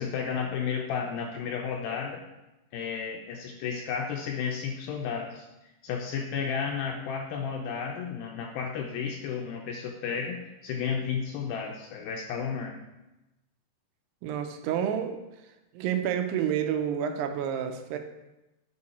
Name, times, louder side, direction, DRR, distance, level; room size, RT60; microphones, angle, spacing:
voice 1, 0.0-2.2 2.7-5.5 5.8-12.8, left 6 dB, 85° left, 2 dB, 2.2 m, -32 dB
voice 2, 14.2-15.2 15.7-18.0, right 9 dB, 90° right, 6 dB, 2.7 m, -29 dB
8.3 x 4.7 x 4.1 m, 0.98 s
omnidirectional pair, 4.7 m